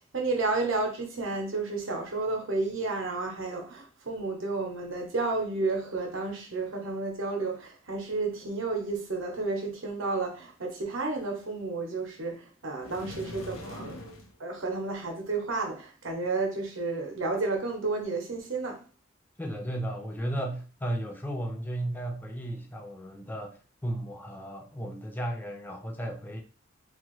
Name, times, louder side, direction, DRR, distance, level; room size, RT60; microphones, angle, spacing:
voice 1, 0.1-14.0 14.4-18.8, right 3 dB, 70° right, 0.9 m, -31 dB
sound 1, 12.8-14.3, left 1 dB, 85° left, 0.6 m, -42 dB
voice 2, 19.4-26.4, right 1 dB, 10° left, 0.5 m, -34 dB
2.9 x 2.4 x 3.0 m
head